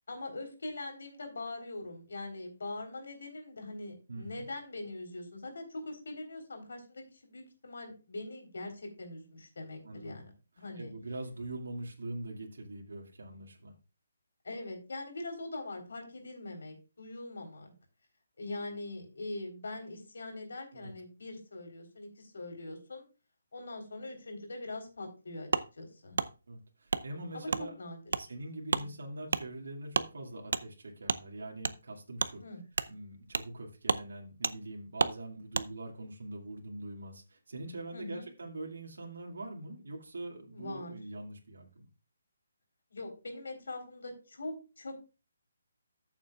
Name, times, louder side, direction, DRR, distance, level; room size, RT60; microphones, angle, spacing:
voice 1, 0.1-10.3 10.6-10.9 14.4-17.7 18.4-23.0 23.5-25.5 25.8-26.2 27.3-27.5 27.8-28.0 28.7-28.9 32.4-32.6 37.9-38.3 40.5-41.0 42.9-44.9, left 2 dB, 70° left, 3 dB, 3.8 m, -42 dB
voice 2, 4.1-4.4 9.8-10.3 10.8-13.7 20.7-20.9 26.5-27.7 28.2-32.4 32.9-41.9, right 2 dB, 80° right, 0 dB, 2.2 m, -43 dB
Wood, 25.5-25.7 26.2-26.3 26.9-27.0 27.5-27.6 28.1-28.2 28.7-28.9 29.3-29.4 29.9-30.1 30.5-30.6 31.1-31.2 31.6-31.8 32.2-32.3 32.7-32.9 33.3-33.5 33.8-34.0 34.4-34.6 35.0-35.2 35.5-35.7, right 4 dB, 65° right, 0.6 m, -30 dB
14.0 x 7.1 x 2.4 m, 0.31 s
hypercardioid pair, 180°, 0 cm